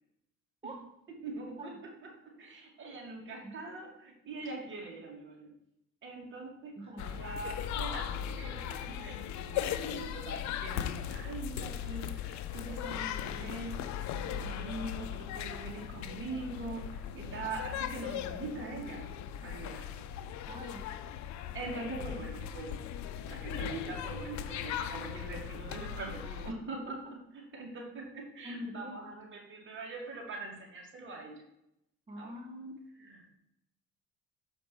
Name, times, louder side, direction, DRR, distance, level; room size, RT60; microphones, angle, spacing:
voice 1, 1.2-1.7 2.4-5.5 6.0-13.8 14.1-19.0 19.4-20.0 20.4-20.5 21.5-22.7 23.2-31.3 32.2-32.3 33.0-33.3, right 3 dB, 40° right, -1 dB, 2.4 m, -43 dB
voice 2, 3.2-3.5 6.8-7.3 20.5-20.9 26.5-26.7 28.4-29.0 32.1-32.9, equal, 20° right, 0 dB, 0.9 m, -45 dB
sound 1, 7.0-26.5, left 10 dB, 65° left, 0.6 m, -38 dB
6.8 x 5.1 x 4.6 m, 0.82 s
cardioid pair, 115°, 30 cm